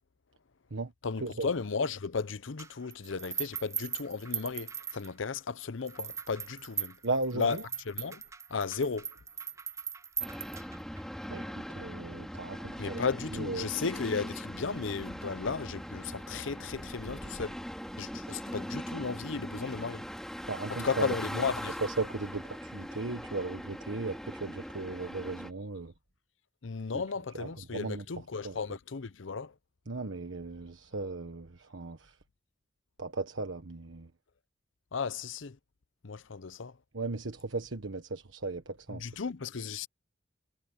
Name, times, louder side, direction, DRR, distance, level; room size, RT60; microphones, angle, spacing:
voice 1, 1.0-7.0 7.3-7.6 7.9-8.2 8.5-9.1 12.8-17.6 18.0-20.0 20.7-21.8 26.6-29.5 34.9-35.6 36.0-36.8 38.9-39.9, left 5 dB, 90° left, 0.7 m, -34 dB
sound 1, 2.6-5.4 5.9-11.0, right 7 dB, 15° right, 0.4 m, -39 dB
voice 2, 7.0-7.6 11.3-13.0 13.3-13.7 20.5-21.5 21.8-25.9 26.9-27.0 27.3-28.0 28.4-28.6 29.9-32.2 33.0-34.1 36.9-39.1, right 3 dB, 85° right, 1.4 m, -36 dB
sound 2, 10.2-25.5, equal, 5° left, 2.7 m, -41 dB
head